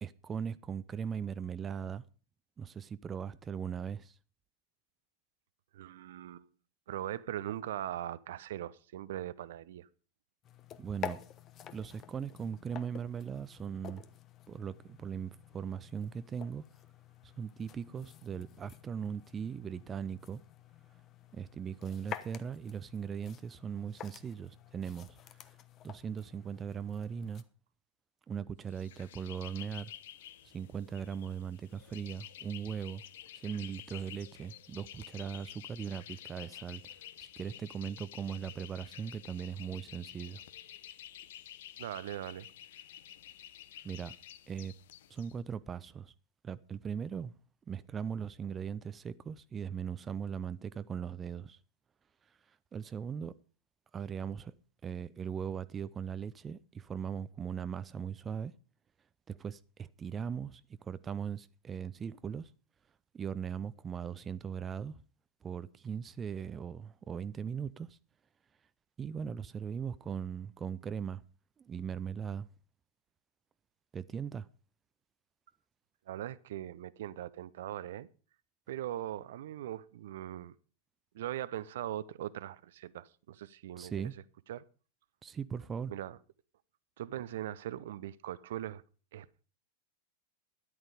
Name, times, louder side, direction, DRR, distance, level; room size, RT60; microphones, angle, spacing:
voice 1, 0.0-2.0 2.6-4.2 10.8-11.2 11.7-14.0 14.5-16.6 17.2-20.4 21.3-25.2 25.8-27.4 28.3-29.9 30.4-33.0 33.4-36.8 37.2-40.4 43.8-44.1 44.5-44.7 45.1-46.1 46.4-47.3 47.7-51.6 52.5-53.3 53.9-54.5 54.8-58.5 59.3-62.5 63.1-65.0 65.4-68.0 69.0-71.2 71.6-72.5 73.9-74.5 83.8-84.1 85.2-85.9, right 7 dB, 20° right, 0.6 m, -39 dB
voice 2, 5.7-6.5 6.9-9.9 41.8-42.5 76.1-78.1 78.7-80.5 81.1-84.1 84.5-84.6 85.9-86.2 87.0-88.8 89.1-89.5, right 12 dB, 55° right, 0.7 m, -40 dB
sound 1, 10.4-27.4, left 9 dB, 30° left, 1.1 m, -49 dB
sound 2, 28.7-45.3, left 11 dB, 55° left, 0.9 m, -50 dB
13.0 x 11.0 x 5.0 m
figure-of-eight pair, 90°, 0 cm